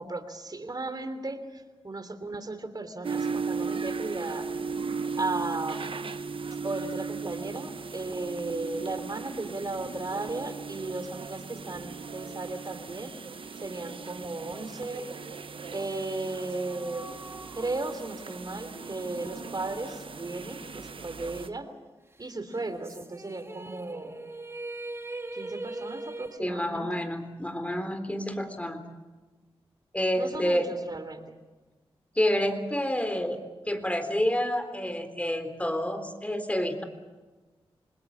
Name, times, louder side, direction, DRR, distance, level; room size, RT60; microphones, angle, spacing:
voice 1, 0.0-4.5 5.2-5.9 6.6-13.1 13.6-15.1 15.7-17.2 17.5-21.7 22.2-24.2 25.3-27.0 30.2-31.3, right 2 dB, 40° right, 9 dB, 3.1 m, -35 dB
sound 1, 3.0-21.5, right 5 dB, 60° right, 1.0 m, -37 dB
sound 2, 16.5-20.9 21.2-21.3 22.5-26.4, right 2 dB, 25° right, 1.8 m, -42 dB
voice 2, 26.4-28.9 29.9-30.7 32.2-33.4 33.7-36.8, left 1 dB, 15° left, 8 dB, 3.7 m, -28 dB
26.5 x 20.0 x 7.5 m, 1.2 s
cardioid pair, 50°, 10 cm